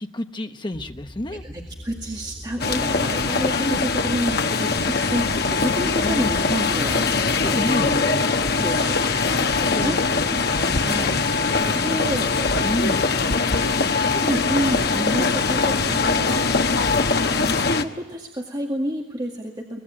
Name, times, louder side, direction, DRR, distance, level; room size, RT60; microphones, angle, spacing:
voice 1, 0.0-1.4 3.6-3.8 6.0-6.3 7.3-7.9 9.7-11.1 11.6-12.3 12.6-13.1, left 1 dB, 25° left, 7 dB, 1.0 m, -30 dB
sound 1, 0.7-16.7, equal, 5° right, 1.9 m, -41 dB
voice 2, 1.4-8.2 8.6-10.0 10.7-12.8 13.9-16.5 17.0-19.8, equal, 20° right, 0 dB, 2.1 m, -30 dB
sound 2, 2.6-17.8, left 4 dB, 55° left, 1.1 m, -22 dB
23.5 x 19.5 x 8.8 m, 1.1 s
head